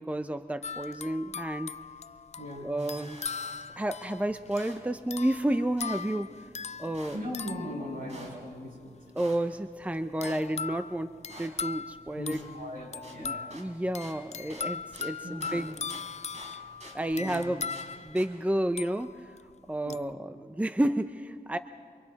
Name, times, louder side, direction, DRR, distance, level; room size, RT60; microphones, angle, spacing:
voice 1, 0.0-1.7 2.6-3.2 3.8-6.3 6.8-7.2 9.1-12.4 13.2-15.8 16.9-17.7 18.0-19.4 19.7-21.6, right 1 dB, 10° right, 9 dB, 0.7 m, -31 dB
sound 1, 0.6-8.5 10.2-19.4 19.9-20.1, left 5 dB, 45° left, 0.4 m, -40 dB
voice 2, 2.4-2.7 7.1-9.0 12.2-13.5 15.2-15.6 17.1-17.4 19.8-20.0, equal, 65° right, -2 dB, 7.7 m, -39 dB
sound 2, 2.8-18.3, right 1 dB, 45° right, 4.3 m, -52 dB
28.0 x 25.0 x 4.2 m, 2.1 s
wide cardioid pair, 70°, 16 cm